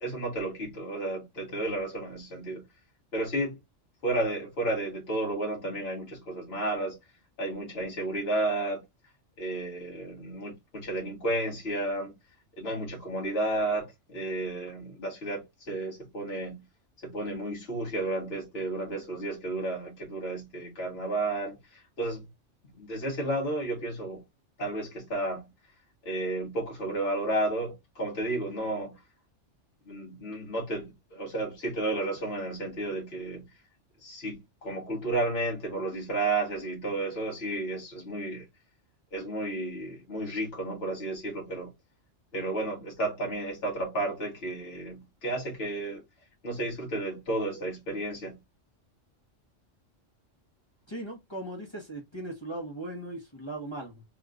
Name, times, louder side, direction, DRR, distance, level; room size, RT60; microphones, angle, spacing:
voice 1, 0.0-2.6 3.1-3.6 4.0-7.0 7.4-8.8 9.4-12.1 12.6-16.6 17.0-22.3 22.8-24.2 24.6-25.5 26.1-28.9 29.9-33.5 34.0-38.5 39.1-41.7 42.3-46.0 46.4-48.4, right 2 dB, 50° left, 1.6 m, -32 dB
voice 2, 50.9-54.0, right 1 dB, 25° left, 1.1 m, -38 dB
3.4 x 3.1 x 2.4 m
omnidirectional pair, 1.3 m